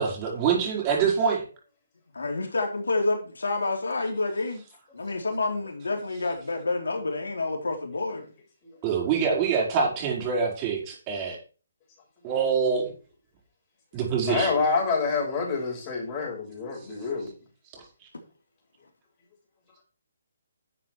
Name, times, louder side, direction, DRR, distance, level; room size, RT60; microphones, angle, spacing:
voice 1, 0.0-1.4 8.8-11.4 12.2-12.9 13.9-14.5, right 6 dB, 25° right, 5.0 m, -25 dB
voice 2, 2.1-4.6 4.9-8.3, left 3 dB, 85° left, 3.5 m, -28 dB
voice 3, 14.3-17.3, left 4 dB, 25° left, 6.3 m, -27 dB
11.5 x 7.4 x 4.8 m
hypercardioid pair, 150°, 0 cm